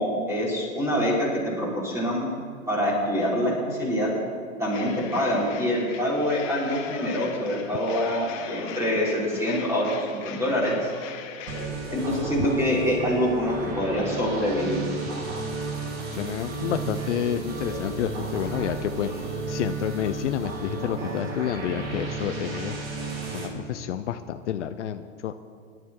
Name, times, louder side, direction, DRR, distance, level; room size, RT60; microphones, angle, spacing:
voice 1, 0.0-2.3 2.7-4.1 4.6-10.9 11.9-14.8, equal, 5° right, -5 dB, 5.3 m, -25 dB
sound 1, 4.7-11.7, left 8 dB, 30° left, 1.8 m, -40 dB
sound 2, 11.5-23.5, right 3 dB, 45° right, 3.5 m, -33 dB
voice 2, 16.1-19.1 19.5-22.8 23.3-25.4, left 10 dB, 60° left, 9 dB, 0.8 m, -29 dB
20.0 x 12.0 x 4.8 m, 2.1 s
hypercardioid pair, 140°, 41 cm